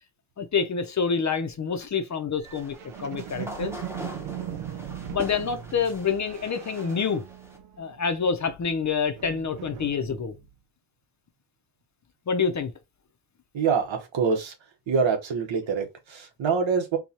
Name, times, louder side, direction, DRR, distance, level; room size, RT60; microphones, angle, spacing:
voice 1, 0.4-3.7 5.1-7.2 7.8-10.3 12.3-12.7, left 6 dB, 40° left, 0.6 m, -27 dB
sound 1, 2.4-7.6, equal, 5° right, 0.7 m, -43 dB
sound 2, 2.4-8.0 8.3-10.5, right 10 dB, 85° right, 0.6 m, -39 dB
voice 2, 13.5-14.5 14.9-17.0, right 5 dB, 70° right, 1.1 m, -25 dB
4.5 x 2.3 x 2.8 m
wide cardioid pair, 140°, 47 cm